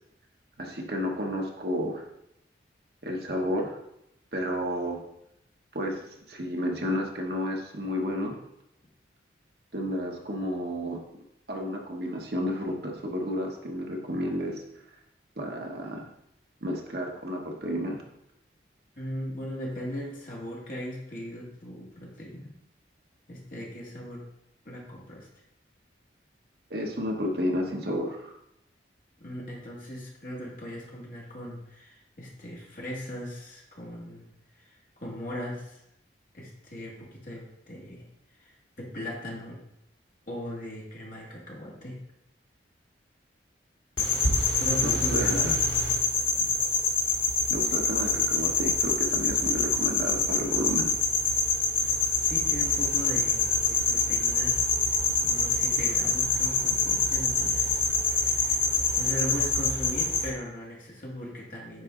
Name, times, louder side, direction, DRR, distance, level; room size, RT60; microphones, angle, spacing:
voice 1, 0.6-2.0 3.0-3.8 4.3-5.0 5.7-6.0 6.3-8.4 9.7-11.0 11.5-14.6 15.4-16.1 16.6-18.0 26.7-28.3 44.8-45.6 47.5-50.9, equal, 55° right, 0 dB, 1.1 m, -31 dB
voice 2, 19.0-22.5 23.3-24.2 24.6-25.3 29.2-34.3 34.5-35.8 36.3-38.1 38.4-39.6 40.3-42.0 44.6-45.5 46.4-46.5 51.8-54.6 55.2-58.7 59.0-61.8, equal, 45° left, -4 dB, 2.0 m, -38 dB
sound 1, 44.0-60.3, left 3 dB, 90° left, 1.9 m, -25 dB
9.7 x 4.1 x 3.8 m, 0.81 s
head